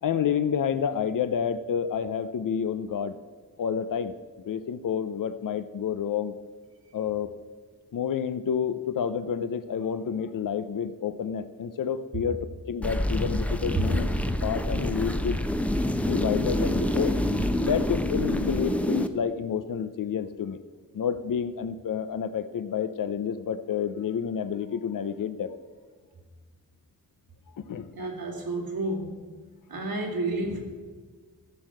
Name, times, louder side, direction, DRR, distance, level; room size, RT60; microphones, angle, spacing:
voice 1, 0.0-3.1 3.6-4.1 4.5-6.3 6.9-7.3 7.9-15.4 16.0-17.2 17.6-20.6 20.9-25.5 27.6-27.9, left 7 dB, 65° left, 12 dB, 0.6 m, -29 dB
sound 1, 12.8-19.1, left 1 dB, 5° left, 0.7 m, -27 dB
voice 2, 27.9-29.2 29.7-30.6, right 2 dB, 90° right, 0 dB, 2.6 m, -31 dB
14.0 x 6.5 x 7.6 m, 1.5 s
wide cardioid pair, 85°, 35 cm